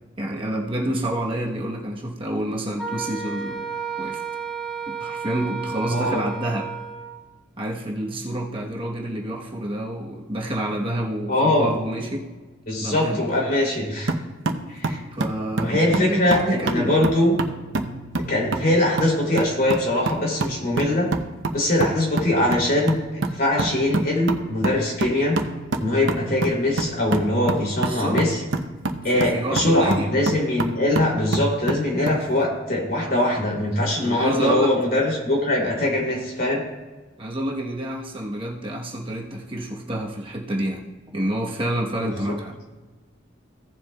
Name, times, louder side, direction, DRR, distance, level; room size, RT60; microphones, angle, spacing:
voice 1, 0.2-3.7 4.0-4.2 5.0-6.7 7.6-12.3 12.8-13.2 15.1-17.0 27.8-28.2 29.1-30.1 34.0-34.7 37.2-40.8 41.1-42.6, right 1 dB, 30° right, -1 dB, 1.0 m, -28 dB
Wind instrument woodwind instrument, 2.8-7.2, right 6 dB, ahead, 1.9 m, -32 dB
voice 2, 5.9-6.2 11.3-11.7 12.7-14.1 14.7-15.0 15.6-17.3 18.3-21.1 21.5-23.0 23.3-25.4 25.8-28.4 29.0-36.6 42.0-42.2, left 1 dB, 50° left, -2 dB, 2.9 m, -22 dB
sound 1, 14.1-32.2, right 2 dB, 90° right, 0.7 m, -28 dB
16.0 x 7.5 x 2.3 m, 1.2 s
head